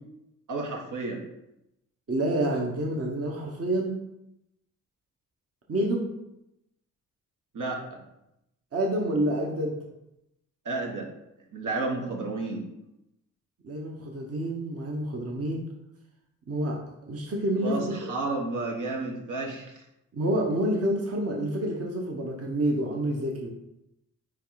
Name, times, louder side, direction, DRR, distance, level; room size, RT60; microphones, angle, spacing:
voice 1, 0.5-1.2 7.5-8.0 10.6-11.1 11.5-12.6 17.6-19.7, right 3 dB, 65° right, 0 dB, 1.4 m, -31 dB
voice 2, 2.1-3.9 5.7-6.0 8.7-9.7 13.6-15.7 16.5-16.8 17.1-18.1 20.1-23.5, right 1 dB, 45° right, 0 dB, 1.2 m, -28 dB
9.1 x 3.2 x 4.1 m, 0.85 s
cardioid pair, 85°, 33 cm